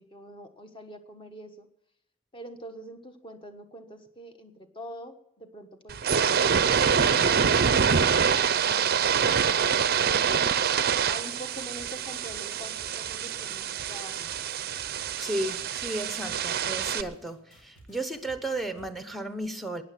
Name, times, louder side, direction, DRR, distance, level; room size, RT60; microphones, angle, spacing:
voice 1, 0.0-1.7 2.3-9.9 11.1-14.3, equal, 25° left, 6 dB, 1.3 m, -45 dB
sound 1, 5.9-17.0, right 7 dB, 45° right, 0.6 m, -25 dB
sound 2, 11.0-18.9, right 1 dB, 70° left, 4.3 m, -54 dB
voice 2, 15.1-19.8, right 1 dB, ahead, 9 dB, 0.8 m, -34 dB
15.0 x 9.8 x 7.6 m, 0.79 s
head